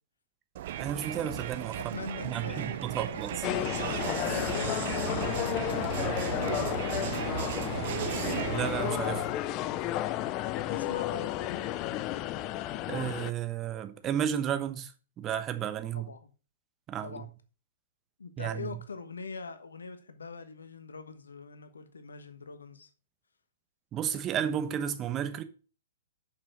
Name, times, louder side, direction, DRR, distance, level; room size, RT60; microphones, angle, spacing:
Crowd, 0.6-9.4, right 12 dB, 50° right, 0.5 m, -35 dB
voice 1, 0.8-1.9 2.2-3.3 8.5-9.3 12.9-14.9 15.2-16.1 16.9-17.2 18.4-18.7 23.9-25.4, right 9 dB, 25° right, 1.0 m, -32 dB
voice 2, 1.7-7.7 10.4-12.0 15.9-16.3 17.0-17.3 18.2-22.9, left 4 dB, 70° left, 1.3 m, -44 dB
sound 1, 3.4-13.3, left 13 dB, 30° left, 0.5 m, -32 dB
6.7 x 5.8 x 6.4 m
figure-of-eight pair, 115°, 0 cm